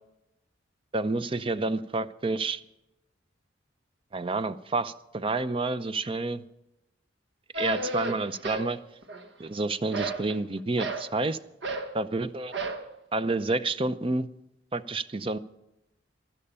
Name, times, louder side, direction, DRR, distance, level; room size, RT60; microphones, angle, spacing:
voice 1, 0.9-2.6 4.1-6.4 7.5-8.8 9.4-11.4 11.9-12.5 13.1-14.3 14.7-15.4, right 3 dB, 30° right, 14 dB, 0.6 m, -29 dB
sound 1, 7.5-8.7 9.0-9.5 9.9-11.1 11.6-11.9 12.5-12.9, right 2 dB, 65° right, 1.5 m, -32 dB
15.5 x 12.5 x 5.6 m, 0.90 s
head